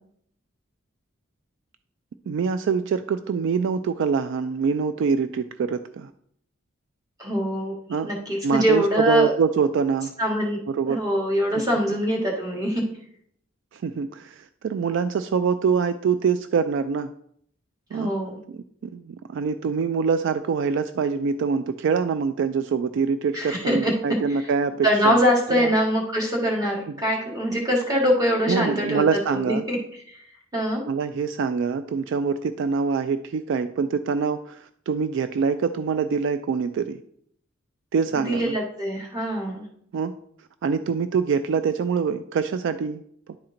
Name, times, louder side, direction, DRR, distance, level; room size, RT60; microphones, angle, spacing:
voice 1, 2.3-6.1 7.9-8.1 8.4-10.1 10.7-11.0 13.7-17.1 17.9-18.1 18.5-25.2 25.5-25.7 28.5-29.6 30.9-37.0 37.9-38.5 39.9-40.1 40.6-43.0, right 5 dB, 60° right, 11 dB, 0.3 m, -24 dB
voice 2, 7.2-7.7 8.0-9.3 10.2-10.6 10.8-12.8 17.9-18.4 23.3-23.9 24.3-24.4 24.8-29.8 30.5-30.8 38.3-39.6, equal, 20° right, -2 dB, 1.7 m, -23 dB
10.5 x 4.3 x 3.8 m, 0.67 s
head